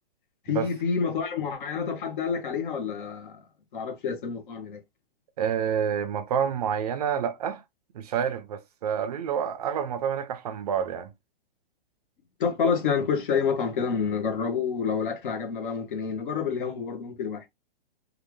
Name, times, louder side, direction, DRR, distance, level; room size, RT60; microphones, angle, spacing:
voice 1, 0.5-3.4 3.7-4.8 12.4-17.5, left 6 dB, 55° left, 1.0 m, -28 dB
voice 2, 5.4-7.6 7.9-11.1, right 8 dB, 40° right, 0.4 m, -28 dB
3.2 x 2.4 x 3.1 m
hypercardioid pair, 155°, 30 cm